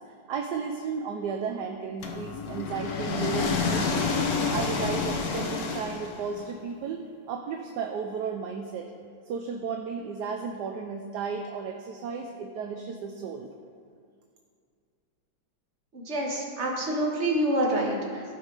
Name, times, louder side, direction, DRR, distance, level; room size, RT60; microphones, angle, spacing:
voice 1, 0.3-4.1 4.5-7.0 7.3-8.9 9.3-13.5, right 5 dB, 70° right, 4 dB, 1.2 m, -33 dB
sound 1, 2.0-6.4, left 4 dB, 55° left, 1.3 m, -29 dB
voice 2, 15.9-18.2, right 1 dB, 35° right, -2 dB, 1.9 m, -27 dB
16.5 x 5.5 x 4.8 m, 2.2 s
omnidirectional pair, 2.0 m